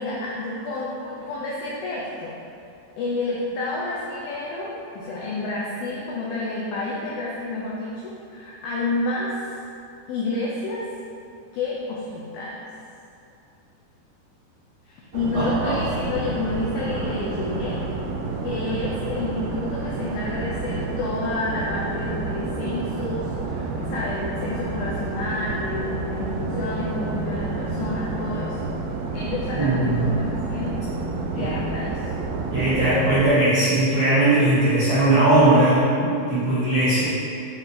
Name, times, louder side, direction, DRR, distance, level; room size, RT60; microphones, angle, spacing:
voice 1, 0.0-2.3 3.0-9.4 10.1-10.9 11.5-12.6 14.8-17.8 18.4-28.7 29.1-30.8 31.3-32.1, left 2 dB, 80° left, -5 dB, 2.1 m, -29 dB
sound 1, 15.1-33.3, right 3 dB, 80° right, 2.5 m, -29 dB
voice 2, 15.3-15.8 29.5-30.1 31.3-31.5 32.5-37.0, right 1 dB, 65° right, -12 dB, 1.6 m, -19 dB
8.8 x 4.3 x 3.6 m, 2.6 s
omnidirectional pair, 5.1 m